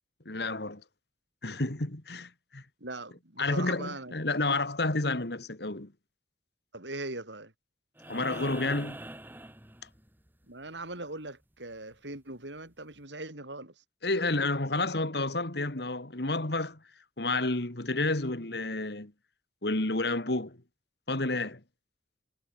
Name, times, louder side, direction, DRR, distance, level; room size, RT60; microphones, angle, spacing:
voice 1, 0.3-0.8 1.4-2.6 3.4-5.9 8.1-9.0 14.0-16.8 17.2-19.1 19.6-20.6 21.1-21.6, left 2 dB, 65° left, 2.3 m, -30 dB
voice 2, 2.8-4.1 6.7-7.5 10.5-13.8, right 2 dB, 80° right, 6.9 m, -40 dB
sound 1, 8.0-10.3 12.1-12.2, right 1 dB, 10° right, 2.2 m, -43 dB
head